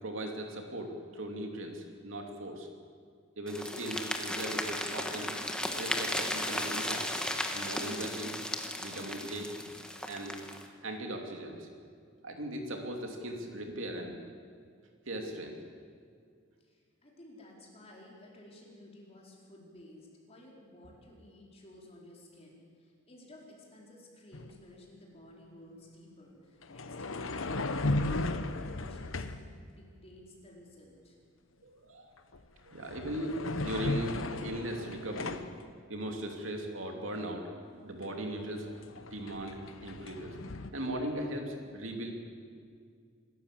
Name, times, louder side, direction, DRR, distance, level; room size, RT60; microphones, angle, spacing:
voice 1, 0.0-2.7 3.4-5.3 5.8-7.2 7.5-8.5 8.8-9.5 10.1-10.4 10.8-11.7 12.2-14.2 15.1-15.6 31.6-32.1 32.6-35.4 35.9-38.7 38.9-40.4 40.7-42.1, right 1 dB, 70° right, 2 dB, 2.9 m, -38 dB
sound 1, 3.5-10.7, left 1 dB, 5° left, 1.5 m, -35 dB
voice 2, 16.6-31.2, left 1 dB, 30° left, -2 dB, 4.7 m, -54 dB
sound 2, 24.3-24.5 26.6-29.5 32.2-32.4 32.7-35.6 38.0-38.1 38.4-40.7, left 2 dB, 80° left, 1.1 m, -36 dB
26.5 x 13.5 x 7.6 m, 2.2 s
head